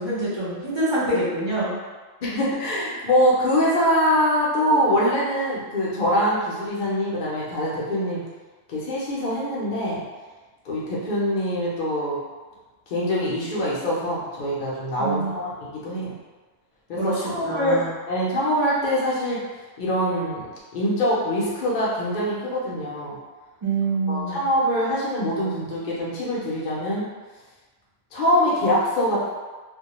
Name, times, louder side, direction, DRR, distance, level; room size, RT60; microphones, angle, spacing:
voice 1, 0.0-1.8 15.0-15.4 17.0-17.9 23.6-24.5, right 2 dB, 35° right, -8 dB, 0.4 m, -26 dB
voice 2, 2.2-8.2 8.7-10.0 10.6-12.2 12.9-16.1 16.9-19.4 19.8-20.5 20.7-23.1 24.1-27.1 28.1-29.3, equal, 55° left, -6 dB, 0.6 m, -24 dB
2.2 x 2.1 x 2.9 m, 1.3 s
omnidirectional pair, 1.2 m